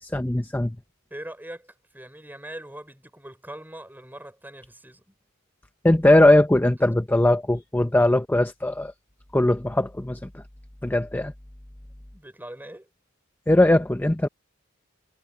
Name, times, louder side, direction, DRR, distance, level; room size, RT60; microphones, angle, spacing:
voice 1, 0.0-0.8 5.8-8.9 9.3-10.3 10.8-11.3 13.5-14.3, left 1 dB, 10° left, 0.6 m, -20 dB
voice 2, 1.1-5.1 12.1-12.9, right 1 dB, 10° right, 5.8 m, -41 dB
head